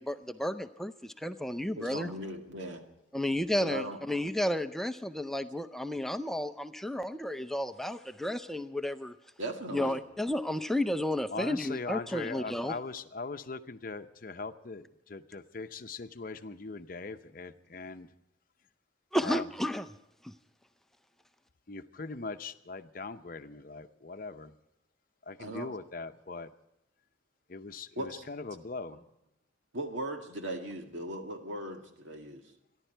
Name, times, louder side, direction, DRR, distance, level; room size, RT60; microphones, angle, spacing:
voice 1, 0.0-2.1 3.1-9.1 9.7-12.8 19.1-19.9 20.2-20.3, left 1 dB, ahead, 10 dB, 0.5 m, -32 dB
voice 2, 1.8-2.8 3.6-4.0 9.4-10.0 25.4-25.7 28.0-28.2 29.7-32.4, right 1 dB, 90° right, 4 dB, 2.0 m, -38 dB
voice 3, 11.3-18.1 19.2-19.5 21.7-24.5 25.3-26.5 27.5-29.0, left 3 dB, 45° left, 9 dB, 0.7 m, -40 dB
27.5 x 11.0 x 4.5 m, 0.86 s
head